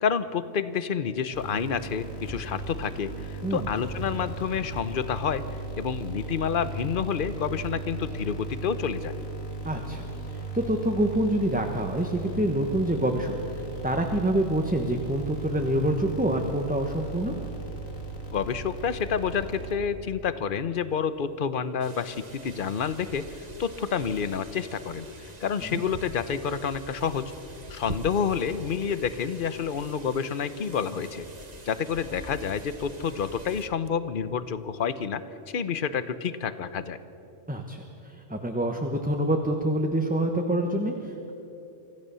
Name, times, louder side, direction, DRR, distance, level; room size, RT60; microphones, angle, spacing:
voice 1, 0.0-5.5 5.8-9.1 18.3-27.3 27.7-31.2 31.6-35.2 35.5-37.0, left 7 dB, 45° left, 13 dB, 0.9 m, -29 dB
sound 1, 1.3-20.1, right 2 dB, 80° left, 3.3 m, -37 dB
voice 2, 9.6-10.1 10.3-13.4 13.8-17.3 25.7-25.8 37.5-41.3, right 1 dB, 5° right, 3 dB, 1.0 m, -26 dB
sound 2, 21.8-33.7, right 1 dB, 30° right, 1.5 m, -44 dB
25.5 x 15.5 x 6.9 m, 3.0 s
omnidirectional pair, 1.4 m